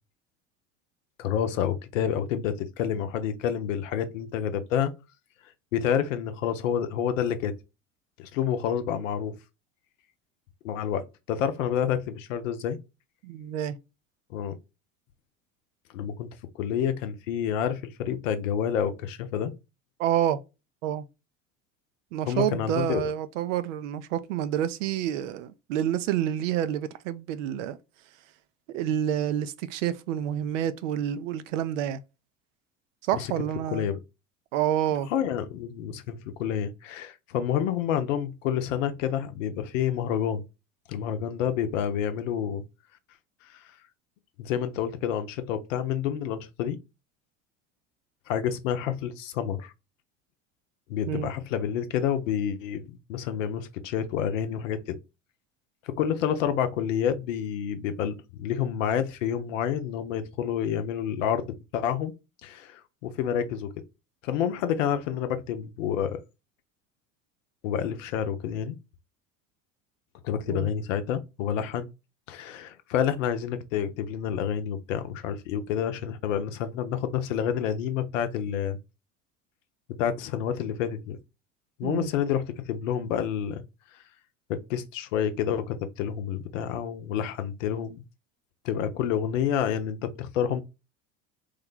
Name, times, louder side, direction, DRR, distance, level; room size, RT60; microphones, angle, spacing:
voice 1, 1.2-4.9 5.7-7.5 8.2-9.3 10.6-12.8 14.3-14.6 15.9-16.3 16.5-19.5 22.3-23.1 33.1-33.3 33.7-34.0 35.1-40.4 40.9-42.6 43.5-43.6 44.4-46.8 48.3-49.7 50.9-55.0 55.8-62.1 62.4-63.7 64.2-66.2 67.6-68.8 70.2-71.9 72.3-78.8 80.0-81.2 81.8-83.6 84.7-88.0 88.6-90.6, left 9 dB, 75° left, 0.6 m, -29 dB
voice 2, 13.2-13.8 20.0-20.4 20.8-21.0 22.1-27.8 28.7-32.0 33.1-33.9 34.5-35.1 51.1-51.3 70.5-70.7 81.8-82.1, right 10 dB, 75° right, 0.5 m, -28 dB
3.1 x 2.2 x 3.7 m
hypercardioid pair, 70°, 38 cm